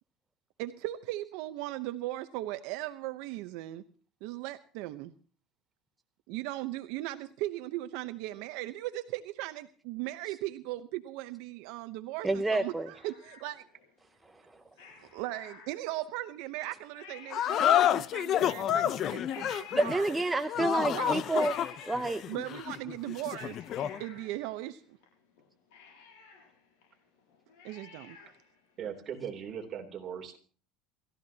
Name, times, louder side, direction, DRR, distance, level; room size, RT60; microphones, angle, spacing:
voice 1, 0.6-3.8 4.2-5.1 6.3-13.6 15.0-20.1 20.6-21.2 22.3-23.6 24.0-25.0 27.6-28.2, right 16 dB, 70° right, 10 dB, 0.8 m, -38 dB
voice 2, 12.2-12.9 19.7-22.2, right 2 dB, 10° right, 7 dB, 0.6 m, -29 dB
Cat, 12.4-13.9 14.7-16.1 16.6-16.7 16.9-18.4 19.2-20.6 21.3-22.6 23.0-25.0 25.4-25.5 25.7-28.5 28.8-28.9, left 5 dB, 90° left, 7.6 m, -51 dB
sound 1, 17.3-24.0, left 10 dB, 40° left, 0.6 m, -29 dB
voice 3, 28.8-30.4, right 8 dB, 35° right, 3 dB, 3.3 m, -39 dB
28.0 x 14.0 x 2.9 m, 0.40 s
cardioid pair, 150°, 0 cm